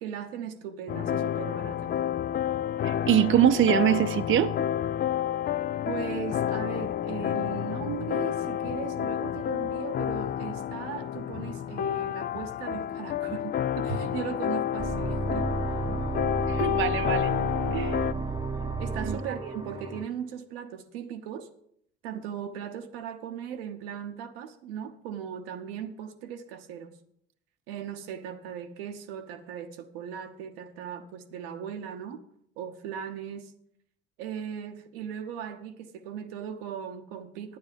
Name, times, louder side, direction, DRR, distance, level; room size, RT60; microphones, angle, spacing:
voice 1, 0.0-2.0 5.8-15.8 18.8-21.5 22.0-27.0 27.7-32.2 32.6-33.5 34.2-37.6, right 8 dB, 80° right, 1.0 m, -38 dB
sound 1, 0.9-18.1, left 10 dB, 35° left, 0.4 m, -30 dB
voice 2, 2.8-4.5 16.5-17.4 17.7-18.0 19.0-19.4, right 10 dB, 45° right, 0.7 m, -24 dB
sound 2, 14.8-20.1, right 3 dB, 15° right, 0.9 m, -32 dB
9.5 x 9.4 x 5.2 m
hypercardioid pair, 65°, 29 cm